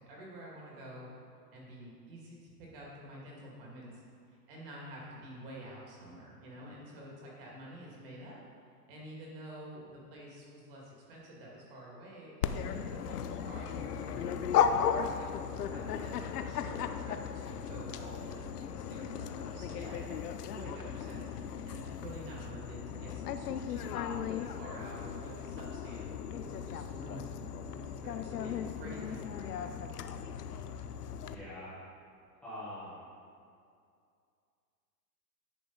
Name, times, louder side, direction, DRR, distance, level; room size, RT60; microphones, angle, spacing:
voice 1, 0.1-1.1 1.5-4.0 4.5-8.4 8.9-14.7 15.1-27.3 27.6-29.6, right 1 dB, 35° right, -4 dB, 2.2 m, -48 dB
Dog, 12.4-31.3, left 8 dB, 70° left, 0.7 m, -36 dB
voice 2, 31.2-31.8 32.4-33.0, left 1 dB, ahead, -16 dB, 0.9 m, -44 dB
10.5 x 6.8 x 4.0 m, 2.4 s
hypercardioid pair, 175°, 49 cm